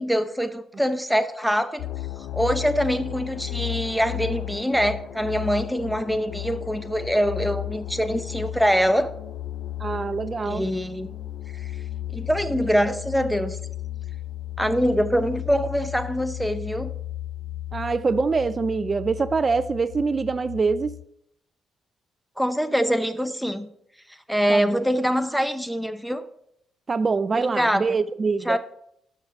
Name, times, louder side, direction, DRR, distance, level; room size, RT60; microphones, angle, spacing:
voice 1, 0.0-1.9 2.3-9.1 10.4-11.1 11.6-11.7 12.1-13.6 14.6-16.9 22.4-23.7 24.3-26.2 27.3-28.0 28.4-28.6, equal, ahead, 0.7 m, -24 dB
sound 1, 1.8-21.0, left 14 dB, 80° left, 0.3 m, -34 dB
voice 2, 9.8-10.7 17.7-21.0 24.5-24.8 26.9-28.6, right 4 dB, 35° right, 0.3 m, -24 dB
6.4 x 6.3 x 5.9 m
cardioid pair, 90°, 0 cm